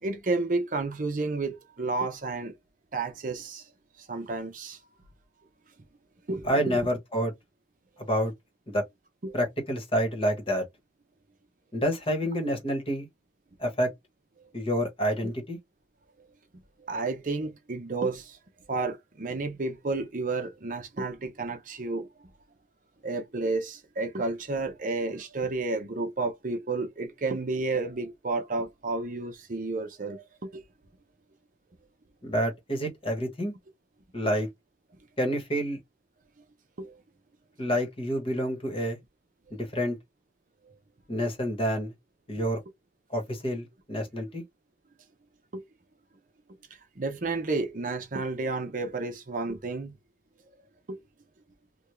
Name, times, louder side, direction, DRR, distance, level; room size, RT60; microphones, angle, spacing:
voice 1, 0.0-2.5 2.9-3.7 4.0-4.8 6.3-6.8 8.0-8.1 9.2-9.3 15.2-15.3 16.8-18.4 18.7-22.1 23.0-30.6 36.8-36.9 45.5-45.6 47.0-50.0 50.9-51.0, right 3 dB, 45° right, 0.7 m, -31 dB
voice 2, 6.4-7.3 8.0-8.3 8.7-8.8 9.3-10.7 11.7-13.1 13.6-13.9 14.5-15.6 32.2-33.5 34.1-34.5 35.2-35.8 37.6-39.0 39.5-40.0 41.1-41.9 42.3-42.6 43.1-44.4, equal, 30° left, 1.2 m, -28 dB
3.4 x 2.3 x 3.0 m
head